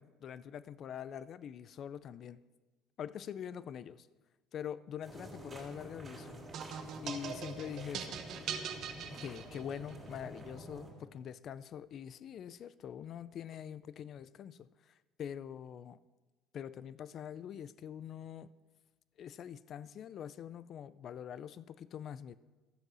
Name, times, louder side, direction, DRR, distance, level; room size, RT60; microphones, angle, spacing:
voice 1, 0.0-2.4 3.0-4.1 4.5-6.5 7.0-8.2 9.2-16.0 16.5-18.5 19.2-22.4, left 9 dB, 40° left, 17 dB, 0.4 m, -44 dB
sound 1, 5.0-10.9, right 1 dB, 20° right, 3.3 m, -49 dB
sound 2, 6.5-9.9, right 7 dB, 50° right, 1.1 m, -42 dB
13.5 x 7.7 x 6.2 m, 1.2 s
cardioid pair, 140°, 0 cm